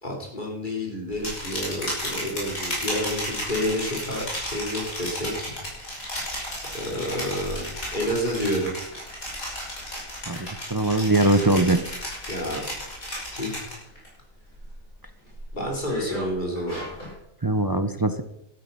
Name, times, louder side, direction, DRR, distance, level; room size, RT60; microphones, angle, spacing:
voice 1, 0.0-5.6 6.7-8.7 12.3-12.6 13.3-13.6 15.5-16.8, equal, 35° left, -1 dB, 3.9 m, -29 dB
sound 1, 1.1-14.1 14.4-14.8 15.3-17.1, left 1 dB, 85° left, 5.8 m, -33 dB
voice 2, 10.3-12.0 17.4-18.2, right 2 dB, 25° right, 10 dB, 0.5 m, -22 dB
13.0 x 12.5 x 5.6 m, 0.82 s
omnidirectional pair, 1.4 m